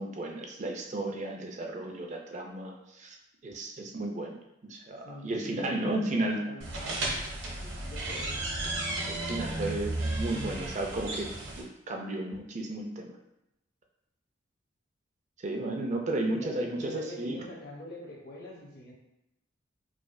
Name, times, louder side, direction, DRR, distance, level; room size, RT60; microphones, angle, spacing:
voice 1, 0.0-3.2 3.4-6.4 9.1-11.3 11.6-13.1 15.4-17.4, right 2 dB, 35° right, 2 dB, 0.4 m, -33 dB
voice 2, 5.0-7.2 7.5-8.4 16.1-18.9, left 1 dB, 55° left, -2 dB, 0.8 m, -44 dB
sound 1, 6.6-11.6, right 2 dB, 70° right, 0.8 m, -34 dB
4.7 x 2.3 x 2.5 m, 0.85 s
head